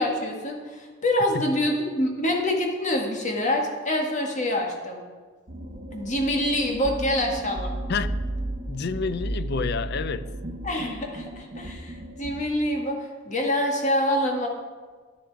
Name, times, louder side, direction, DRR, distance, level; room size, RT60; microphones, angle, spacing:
voice 1, 0.0-5.0 5.9-7.7 10.6-14.5, left 1 dB, 35° left, 1.8 m, -26 dB
sound 1, 5.5-12.4, right 1 dB, 45° right, 1.1 m, -34 dB
voice 2, 7.9-8.2 8.7-10.3, left 5 dB, 50° left, 0.4 m, -29 dB
11.0 x 10.5 x 4.7 m
head